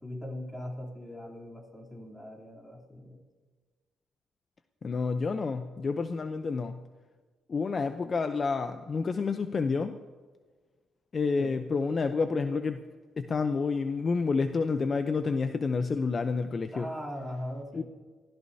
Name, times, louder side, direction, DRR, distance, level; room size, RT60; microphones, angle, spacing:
voice 1, 0.0-3.2 11.4-11.7 16.7-17.8, left 1 dB, 5° left, -2 dB, 3.3 m, -40 dB
voice 2, 4.8-6.8 7.5-10.0 11.1-12.8 13.2-16.9 17.7-17.8, left 4 dB, 40° left, 9 dB, 0.6 m, -29 dB
23.0 x 15.5 x 2.8 m, 1.4 s
cardioid pair, 90°, 0 cm